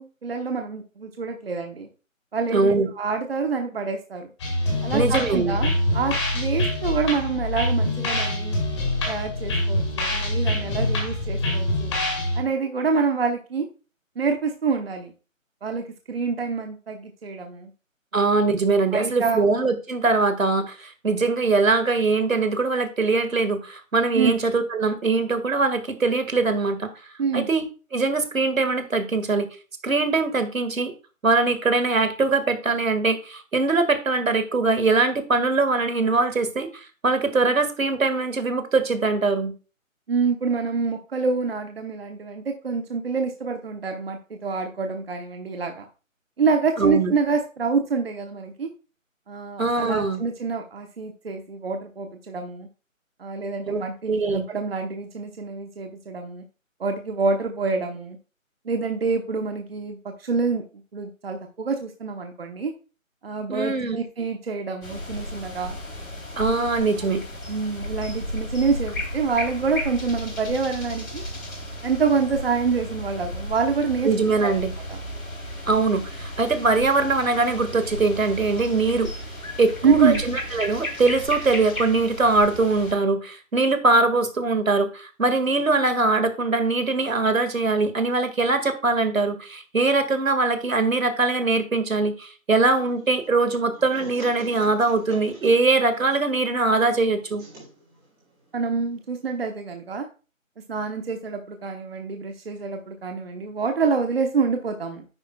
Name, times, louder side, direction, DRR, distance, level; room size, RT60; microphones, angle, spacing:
voice 1, 0.0-1.9 2.3-4.3 4.8-8.6 9.1-11.9 12.4-13.6 14.2-15.1 15.6-17.7 18.9-19.4 24.1-24.3 27.2-27.5 40.1-45.8 46.4-48.7 49.3-52.7 53.2-56.4 56.8-58.2 58.6-60.6 60.9-62.7 63.2-65.8 67.5-71.2 71.8-74.1 74.9-75.0 79.8-80.2 98.5-100.1 100.7-105.1, right 5 dB, 45° right, 5 dB, 1.0 m, -26 dB
voice 2, 2.5-2.9 4.9-5.5 18.1-26.9 27.3-27.6 27.9-29.5 29.8-30.9 31.2-39.5 46.8-47.1 49.6-50.2 53.7-53.8 54.1-54.4 63.5-64.0 66.4-67.2 74.1-74.7 75.7-79.1 79.6-97.4, right 3 dB, 75° right, 9 dB, 1.9 m, -22 dB
sound 1, 4.4-12.4, left 1 dB, 20° left, 2.1 m, -25 dB
sound 2, 64.8-82.9, equal, 85° left, 3.3 m, -34 dB
sound 3, 92.7-99.4, right 3 dB, 10° right, 3.8 m, -46 dB
9.9 x 8.5 x 2.3 m, 0.33 s
figure-of-eight pair, 160°, 41 cm